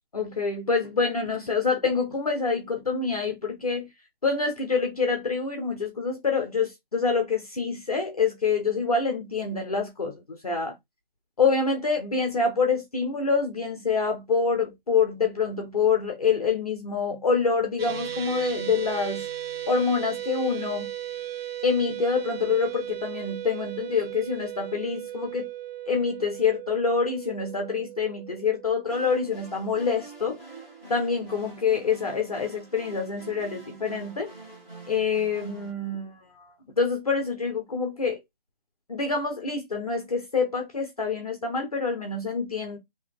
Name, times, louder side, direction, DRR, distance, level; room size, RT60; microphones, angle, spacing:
voice 1, 0.1-3.9 4.2-10.8 11.4-19.3 19.7-20.9 21.6-25.5 25.9-30.4 30.9-34.3 34.9-36.2 36.7-38.2 38.9-42.8, left 5 dB, 40° left, 0.7 m, -26 dB
sound 1, 17.8-30.1, right 11 dB, 85° right, 0.8 m, -37 dB
sound 2, 28.9-35.7, right 2 dB, 10° right, 1.3 m, -46 dB
3.9 x 2.8 x 3.2 m
hypercardioid pair, 175°, 29 cm